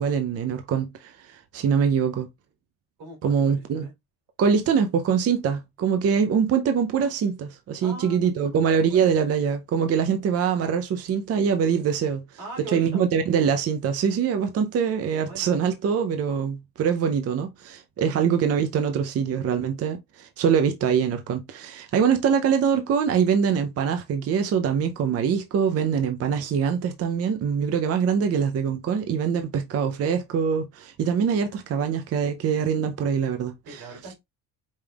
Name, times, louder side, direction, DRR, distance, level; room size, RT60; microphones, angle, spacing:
voice 1, 0.0-2.3 3.2-3.9 4.4-12.2 12.7-33.8, right 7 dB, 45° right, 0.5 m, -24 dB
voice 2, 3.0-3.9 7.8-9.1 12.4-13.0 15.2-15.5 18.0-18.3 33.6-34.2, right 1 dB, 80° right, 3.2 m, -41 dB
5.2 x 3.4 x 2.3 m
cardioid pair, 135°, 36 cm